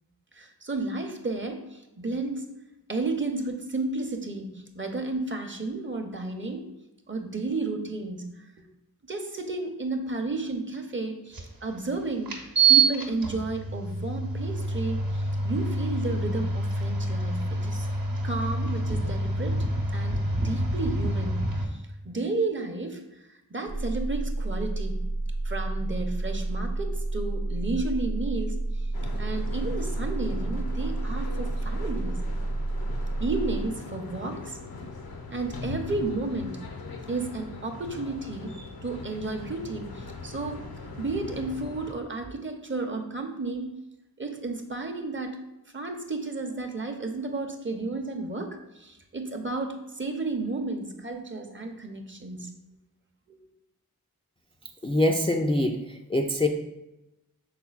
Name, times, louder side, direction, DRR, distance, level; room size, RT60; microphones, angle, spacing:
voice 1, 0.3-2.5 2.9-6.7 7.1-8.4 9.0-17.9 18.2-19.7 19.9-23.0 23.5-25.1 25.4-28.9 29.2-32.2 33.2-34.6 35.3-36.6 37.1-40.7 41.0-43.7 44.2-45.4 45.7-52.5 53.3-53.4, right 3 dB, 30° right, 4 dB, 0.7 m, -32 dB
sound 1, 11.3-11.4 12.3-21.6, right 3 dB, 65° right, 0.9 m, -26 dB
sound 2, 23.7-33.7, right 2 dB, 90° right, 0.6 m, -30 dB
sound 3, 28.9-41.9, left 3 dB, 75° left, 0.7 m, -41 dB
voice 2, 54.8-56.5, left 1 dB, 15° left, 1 dB, 0.4 m, -24 dB
5.8 x 3.8 x 2.4 m, 0.94 s
cardioid pair, 40°, 37 cm